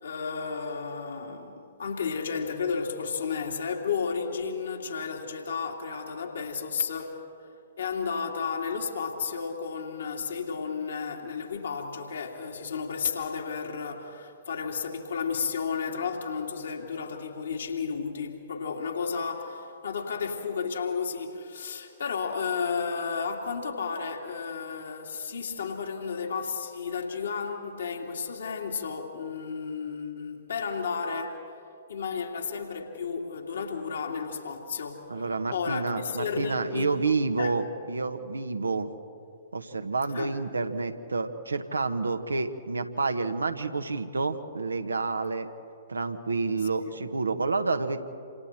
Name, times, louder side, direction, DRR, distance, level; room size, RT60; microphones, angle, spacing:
voice 1, 0.0-7.2 7.8-31.4 31.9-35.2 35.5-36.9 37.4-37.6 40.1-40.3 46.7-46.9, left 5 dB, 60° left, 2 dB, 2.7 m, -32 dB
voice 2, 35.1-38.9 39.5-45.5 45.9-48.0, right 3 dB, 70° right, 8 dB, 1.5 m, -29 dB
28.0 x 27.5 x 4.4 m, 2.6 s
figure-of-eight pair, 115°, 0 cm